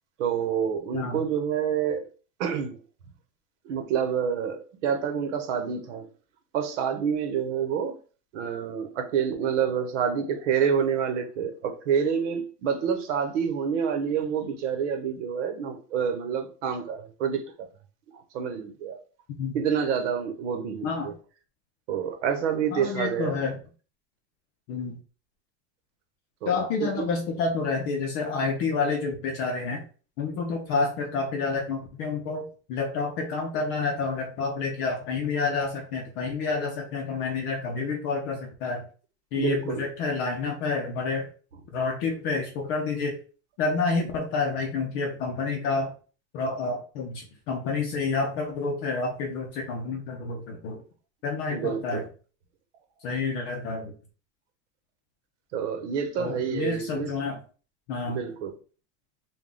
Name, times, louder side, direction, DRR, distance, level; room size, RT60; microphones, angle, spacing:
voice 1, 0.2-2.1 2.4-2.8 3.6-6.1 6.5-8.0 8.3-17.7 18.1-19.0 19.5-21.1 21.9-23.5 26.4-26.5 26.8-26.9 39.3-39.8 51.5-52.1 55.5-57.1 58.0-58.5, right 7 dB, 85° right, 1.0 m, -28 dB
voice 2, 22.7-23.6 24.7-25.0 26.5-29.8 30.2-38.8 39.3-41.3 41.7-43.2 43.6-45.9 46.3-50.8 51.2-52.0 53.0-53.9 56.2-57.4 57.9-58.2, left 4 dB, 30° left, 0.5 m, -29 dB
3.5 x 2.3 x 3.8 m
supercardioid pair, 175°, 35 cm